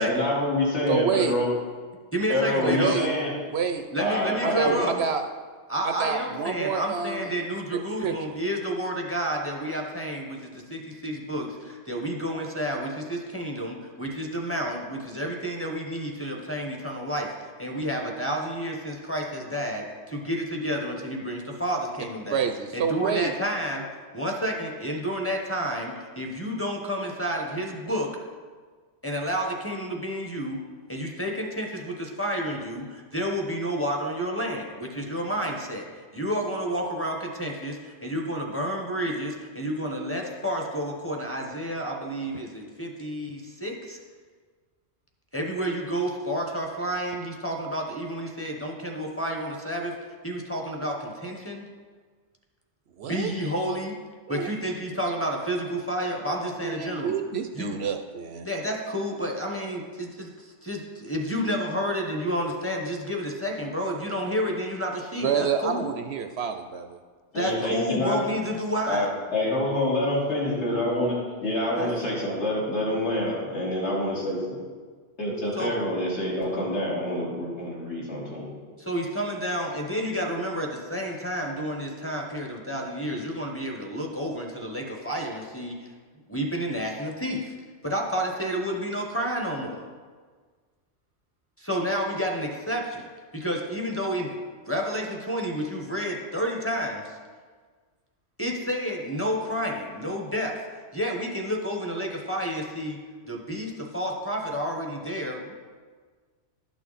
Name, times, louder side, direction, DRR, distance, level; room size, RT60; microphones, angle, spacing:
voice 1, 0.0-1.5 2.3-3.3 4.0-4.8 67.3-68.2 68.9-71.1 71.4-74.5 75.2-78.5, left 1 dB, 65° left, -6 dB, 3.0 m, -26 dB
voice 2, 0.9-1.4 2.6-3.1 3.5-3.9 4.4-5.2 5.8-7.3 8.0-8.4 22.3-23.3 53.0-53.3 54.3-54.5 56.5-58.4 65.2-67.0, right 6 dB, 70° right, 7 dB, 0.8 m, -28 dB
voice 3, 2.1-3.0 3.9-4.9 5.7-17.3 17.6-22.5 22.7-23.9 24.1-28.1 29.0-30.6 30.9-35.9 36.1-44.0 45.3-50.0 50.2-51.6 53.0-53.9 54.3-57.1 57.5-57.8 58.4-65.9 67.3-69.1 71.8-71.9 75.6-75.7 78.8-85.9 86.3-87.5 87.8-89.8 91.6-94.3 94.7-97.2 98.4-100.6 100.9-103.0 103.3-105.5, equal, 10° left, -1 dB, 1.0 m, -30 dB
12.0 x 6.2 x 4.1 m, 1.5 s
omnidirectional pair, 1.2 m